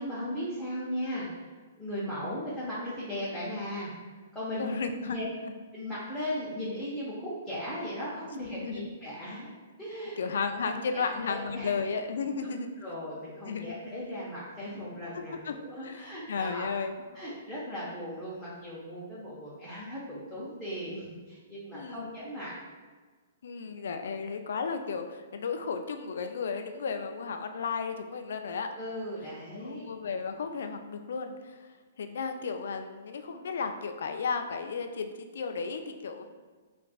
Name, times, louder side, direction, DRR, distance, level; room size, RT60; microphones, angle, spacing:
voice 1, 0.0-1.5 1.7-4.7 5.1-5.3 5.7-9.5 9.8-10.2 10.6-11.7 12.8-16.7 17.1-22.5 28.8-29.9, equal, 5° left, -10 dB, 0.9 m, -37 dB
voice 2, 4.5-5.2 5.4-5.5 8.6-8.9 10.2-12.7 13.4-13.8 15.1-15.6 15.8-17.0 21.7-22.2 23.4-28.7 29.5-31.7 32.0-36.2, left 5 dB, 60° left, 7 dB, 0.3 m, -34 dB
4.6 x 2.5 x 2.4 m, 1.4 s
figure-of-eight pair, 115°, 0 cm